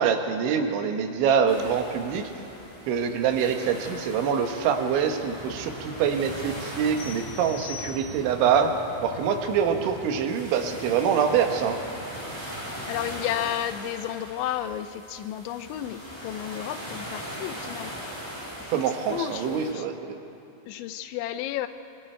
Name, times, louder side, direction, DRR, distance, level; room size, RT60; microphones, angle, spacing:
voice 1, 0.0-2.3 2.9-8.7 9.0-11.8 18.7-19.9, right 7 dB, 85° right, 5 dB, 3.6 m, -25 dB
sound 1, 1.5-19.7, equal, 5° left, 4.3 m, -40 dB
sound 2, 5.4-13.2, right 2 dB, 45° right, 3.9 m, -43 dB
sound 3, 7.0-8.5, left 7 dB, 70° left, 5.2 m, -41 dB
voice 2, 12.9-17.9 18.6-18.8 19.1-19.9 20.7-21.7, left 11 dB, 85° left, 10 dB, 3.0 m, -32 dB
24.5 x 23.5 x 4.5 m, 2.8 s
omnidirectional pair, 5.3 m